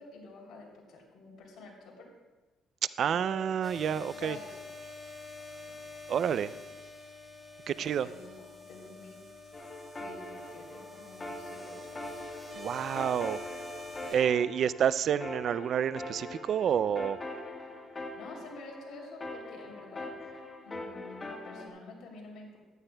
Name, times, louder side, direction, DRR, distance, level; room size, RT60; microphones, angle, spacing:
voice 1, 0.0-2.1 3.1-3.4 3.9-4.6 5.6-5.7 7.7-9.7 9.9-12.3 18.0-20.1 20.6-22.6, left 3 dB, 70° left, 0 dB, 3.1 m, -49 dB
voice 2, 3.0-4.4 6.1-6.5 7.7-8.1 12.5-13.4 14.1-17.2, right 8 dB, 60° right, 17 dB, 0.3 m, -29 dB
sound 1, 3.6-14.2, left 3 dB, 5° right, 2.8 m, -46 dB
sound 2, 9.5-21.7, left 1 dB, 25° left, 1.4 m, -42 dB
14.5 x 11.5 x 2.2 m, 1.2 s
cardioid pair, 80°, 0 cm